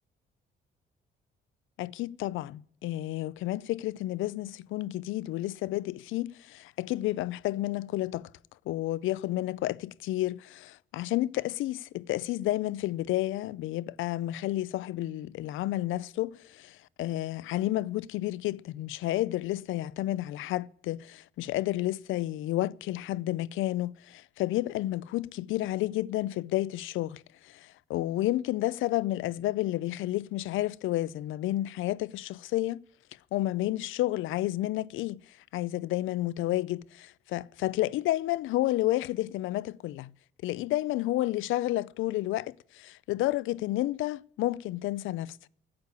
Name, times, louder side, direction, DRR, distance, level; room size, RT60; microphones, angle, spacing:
voice 1, 1.8-8.3 8.7-32.8 33.3-35.2 35.5-40.1 40.4-45.4, left 16 dB, 80° left, 0.5 m, -31 dB
9.6 x 8.3 x 9.6 m
cardioid pair, 90°, 20 cm